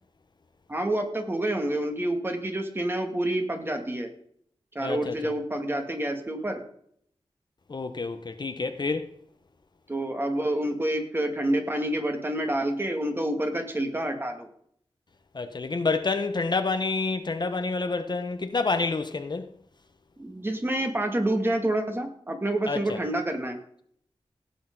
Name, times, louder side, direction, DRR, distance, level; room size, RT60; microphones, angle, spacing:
voice 1, 0.7-4.1 4.7-6.6 9.9-14.5 20.2-23.6, right 1 dB, 20° right, 2.2 m, -28 dB
voice 2, 4.8-5.3 7.7-9.1 15.3-19.5 22.7-23.0, left 3 dB, 45° left, 1.0 m, -28 dB
17.0 x 8.4 x 3.9 m
wide cardioid pair, 110°, 10 cm